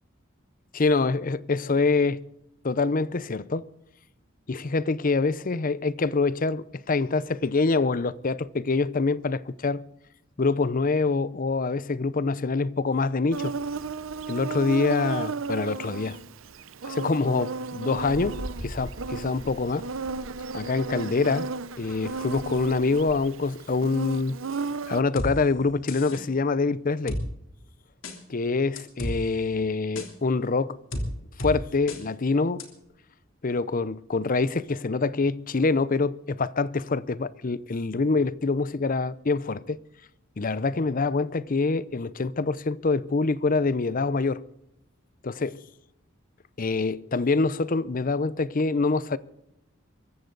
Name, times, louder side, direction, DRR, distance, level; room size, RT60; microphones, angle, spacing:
voice 1, 0.7-2.2 2.6-3.7 4.5-9.8 10.4-13.5 14.3-16.2 16.9-19.9 20.5-21.5 21.8-24.4 24.9-27.2 28.3-30.8 31.4-32.7 33.4-39.8 40.4-44.4 45.2-45.6 46.6-49.2, left 3 dB, 45° left, 0.6 m, -25 dB
Insect, 13.3-25.0, right 4 dB, 75° right, 0.8 m, -34 dB
sound 1, 18.0-23.1, equal, 20° right, 3.1 m, -43 dB
sound 2, 25.2-25.3 25.9-26.2 27.1-27.2 28.0-28.2 28.8-29.2 30.0-30.1 30.9-31.1 31.4-31.5 31.9-32.0 32.6-32.7, left 1 dB, 65° left, 3.3 m, -31 dB
23.5 x 14.5 x 3.9 m
head